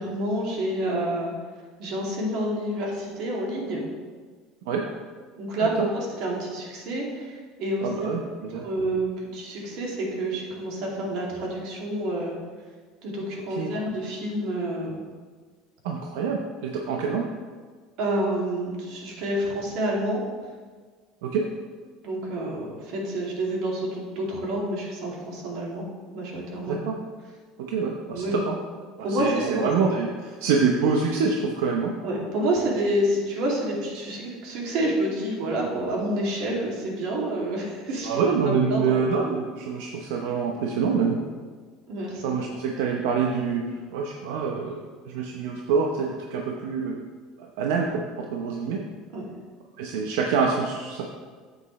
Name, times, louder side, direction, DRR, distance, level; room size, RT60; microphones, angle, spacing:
voice 1, 0.0-1.3 1.8-3.9 5.4-8.1 8.6-12.4 13.0-14.9 18.0-20.2 22.0-25.8 26.1-26.7 28.1-28.4 29.0-29.7 32.0-39.0 41.9-42.2 49.1-49.3, right 1 dB, 60° right, -2 dB, 2.5 m, -28 dB
voice 2, 7.8-8.6 13.6-13.7 15.8-17.3 21.2-21.4 26.7-27.0 27.6-28.6 29.0-31.9 38.0-41.2 42.2-47.0 47.4-48.8 49.8-51.1, right 5 dB, 85° right, 1 dB, 0.8 m, -26 dB
9.7 x 8.0 x 3.2 m, 1.5 s
cardioid pair, 150°, 0 cm